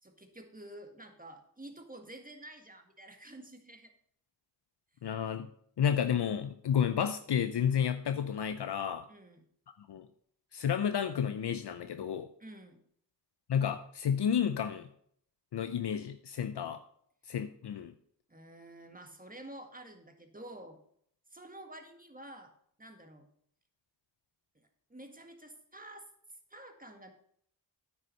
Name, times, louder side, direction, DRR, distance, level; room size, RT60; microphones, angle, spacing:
voice 1, 0.0-3.9 9.1-9.4 12.4-12.8 18.3-20.8 21.3-22.5 22.8-23.3 24.6-26.1 26.5-27.1, right 1 dB, 20° right, 5 dB, 1.8 m, -50 dB
voice 2, 5.0-5.5 5.8-9.0 9.9-10.1 10.5-12.3 13.5-14.9 15.5-16.8 17.3-17.9, left 8 dB, 65° left, 9 dB, 0.7 m, -31 dB
9.3 x 6.0 x 5.4 m, 0.65 s
cardioid pair, 50°, 43 cm